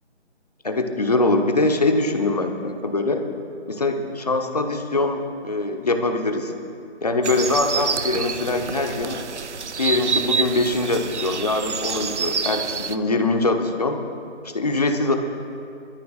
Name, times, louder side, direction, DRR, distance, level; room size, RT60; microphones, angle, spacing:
voice 1, 0.6-3.2 3.7-6.5 7.0-9.2 9.8-14.0 14.4-15.2, left 2 dB, 35° left, 5 dB, 1.0 m, -23 dB
sound 1, 7.2-13.0, right 5 dB, 70° right, 0.8 m, -27 dB
27.0 x 13.5 x 2.4 m, 2.5 s
figure-of-eight pair, 170°, 36 cm